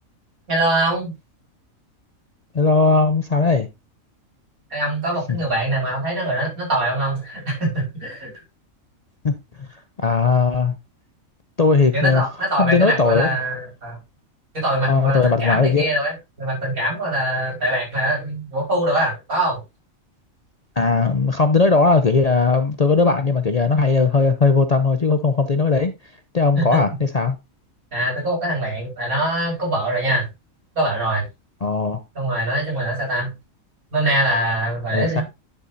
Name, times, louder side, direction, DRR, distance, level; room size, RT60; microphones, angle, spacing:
voice 1, 0.5-1.1 4.7-8.3 11.9-14.0 14.5-19.6 26.6-26.8 27.9-30.3 30.8-31.3 32.2-33.3 33.9-35.2, right 1 dB, 90° right, 5.6 m, -23 dB
voice 2, 2.5-3.7 5.3-5.4 9.2-9.3 10.0-10.7 11.6-12.2 12.6-13.4 14.9-15.9 20.8-25.9 26.3-27.4 31.6-32.0 34.9-35.2, left 4 dB, 40° left, 0.6 m, -18 dB
10.5 x 6.6 x 2.7 m
omnidirectional pair, 1.4 m